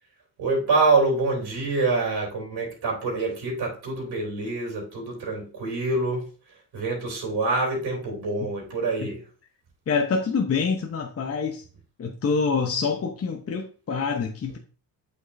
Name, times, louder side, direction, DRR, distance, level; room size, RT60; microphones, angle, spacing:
voice 1, 0.4-6.3 6.7-9.2, right 3 dB, 65° right, 3.2 m, -26 dB
voice 2, 9.9-11.6 12.0-14.6, left 5 dB, 35° left, 0.9 m, -26 dB
8.1 x 6.3 x 2.7 m
cardioid pair, 110°, 42 cm